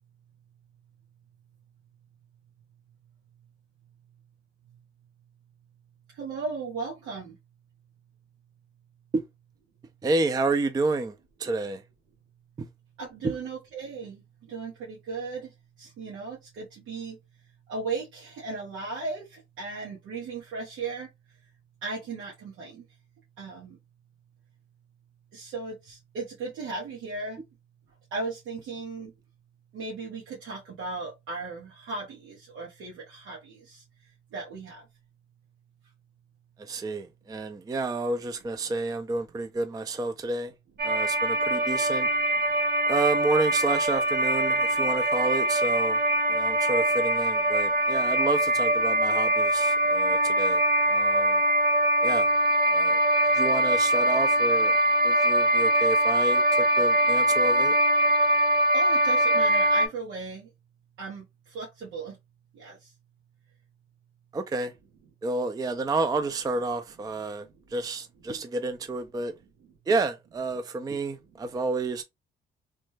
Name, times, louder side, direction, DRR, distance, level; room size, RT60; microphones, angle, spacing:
voice 1, 6.1-7.4 13.0-17.2 17.7-21.4 21.8-22.8 23.4-23.8 25.3-27.4 28.1-29.1 29.7-34.9 42.0-42.1 47.7-47.8 58.0-58.1 58.7-60.5 61.0-62.2 62.5-62.9 67.4-67.6, right 4 dB, 85° right, 1.1 m, -37 dB
voice 2, 10.0-11.8 12.6-12.7 13.2-13.4 36.6-40.5 40.8-42.1 42.9-46.0 46.3-50.6 50.9-51.4 52.0-52.3 52.6-53.0 53.3-54.8 55.0-57.7 64.3-64.7 65.2-67.5 67.7-69.3 69.9-72.0, right 3 dB, 20° right, 0.4 m, -30 dB
sound 1, 40.8-59.9, right 1 dB, 50° right, 1.2 m, -23 dB
3.1 x 2.1 x 3.2 m
cardioid pair, 90°, 20 cm